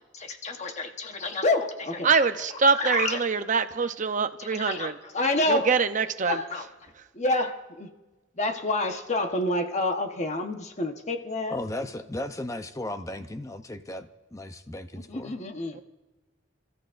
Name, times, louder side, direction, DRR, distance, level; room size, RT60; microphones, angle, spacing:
voice 1, 0.2-2.1 2.7-3.2 4.4-5.7 6.2-6.7 7.1-7.9 8.4-11.6 14.9-15.8, left 2 dB, 40° left, 5 dB, 1.2 m, -28 dB
voice 2, 2.0-4.9 5.5-6.4 15.7-15.8, right 5 dB, 40° right, 9 dB, 0.7 m, -24 dB
voice 3, 11.5-15.4, left 1 dB, 15° left, 8 dB, 0.7 m, -36 dB
29.5 x 14.0 x 2.6 m, 1.2 s
head